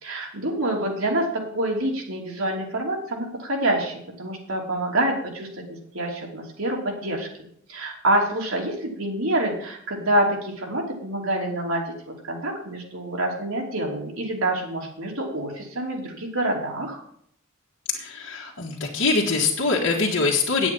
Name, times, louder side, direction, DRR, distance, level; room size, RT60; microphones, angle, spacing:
voice 1, 0.0-5.6 5.9-7.3 7.7-17.0, right 1 dB, 75° right, -1 dB, 3.0 m, -27 dB
voice 2, 17.9-20.7, left 4 dB, 60° left, -2 dB, 1.7 m, -23 dB
9.6 x 8.1 x 5.4 m, 0.67 s
head